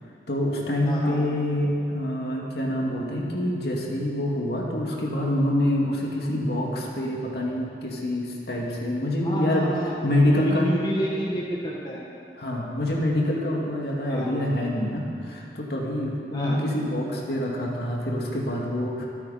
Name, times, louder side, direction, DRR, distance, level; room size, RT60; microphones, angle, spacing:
voice 1, 0.3-9.7 10.0-10.8 12.3-19.1, left 1 dB, 65° left, -2 dB, 2.4 m, -26 dB
voice 2, 0.8-1.2 9.2-12.0 14.1-14.3 16.3-16.6, equal, 25° left, -5 dB, 1.5 m, -30 dB
25.0 x 8.8 x 4.3 m, 2.6 s
head